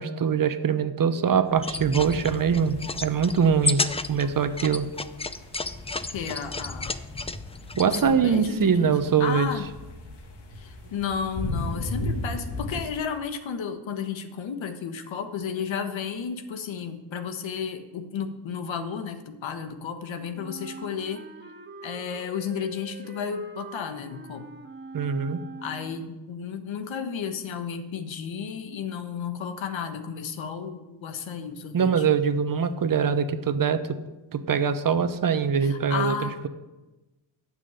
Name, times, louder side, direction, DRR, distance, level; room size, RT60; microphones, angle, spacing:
voice 1, 0.0-4.9 7.8-9.5 24.9-25.4 31.7-33.8 34.3-36.1, right 6 dB, 45° right, 10 dB, 1.0 m, -23 dB
sound 1, 1.5-8.0, left 3 dB, 15° left, 0.5 m, -32 dB
sound 2, 1.8-12.8, left 1 dB, 60° left, 2.4 m, -38 dB
voice 2, 6.1-6.9 7.8-9.7 10.5-21.2 21.8-24.5 25.6-32.1 35.6-36.3, left 7 dB, 75° left, 8 dB, 1.4 m, -33 dB
Wind instrument woodwind instrument, 20.3-26.1, right 3 dB, 25° right, 1.6 m, -43 dB
11.5 x 6.2 x 8.6 m, 1.1 s
cardioid pair, 105°, 46 cm